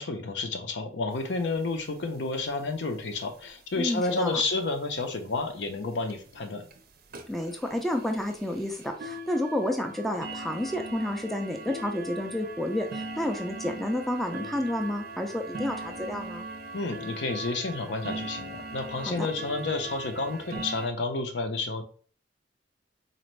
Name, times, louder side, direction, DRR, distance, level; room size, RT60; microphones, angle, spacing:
voice 1, 0.0-6.6 16.7-21.8, left 3 dB, 65° left, 6 dB, 0.6 m, -30 dB
sound 1, 1.2-1.3 1.5-1.6 1.8-2.0 2.3-2.7 3.4-3.5 4.0-4.1 4.5-4.6 5.0-5.1 5.6-5.7 6.1-6.3 6.7-6.8 7.1-20.9, right 2 dB, 50° right, 0.5 m, -40 dB
voice 2, 3.7-4.4 7.3-16.5 19.1-19.3, left 1 dB, ahead, 3 dB, 0.3 m, -30 dB
4.1 x 2.5 x 3.1 m, 0.42 s
head